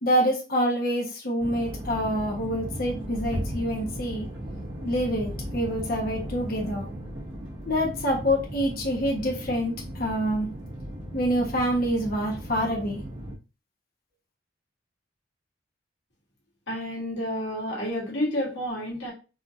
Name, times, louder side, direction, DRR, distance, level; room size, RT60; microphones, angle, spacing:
voice 1, 0.0-4.3 4.8-6.9 7.7-10.5 11.1-13.0, equal, 50° left, -1 dB, 1.1 m, -26 dB
sound 1, 1.4-13.3, equal, 85° right, 1.5 m, -36 dB
voice 2, 16.7-19.1, left 1 dB, 80° left, -3 dB, 1.6 m, -30 dB
4.3 x 2.8 x 2.5 m, 0.31 s
head